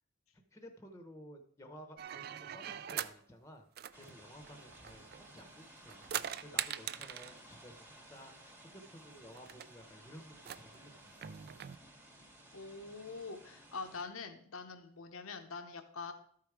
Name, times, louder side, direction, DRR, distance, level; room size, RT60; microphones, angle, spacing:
voice 1, 0.5-3.7 3.9-6.1 6.4-8.3 8.6-11.3, equal, 15° left, 6 dB, 0.8 m, -54 dB
sound 1, 2.0-3.2 3.8-5.4 5.8-7.4 8.5-8.6 8.8-8.9 9.3-9.7 10.4-11.8, right 10 dB, 45° right, 0.3 m, -42 dB
sound 2, 3.9-14.0, right 1 dB, 10° right, 1.1 m, -57 dB
voice 2, 12.5-16.1, left 4 dB, 80° left, 6 dB, 0.8 m, -44 dB
13.0 x 4.7 x 4.8 m, 0.62 s
head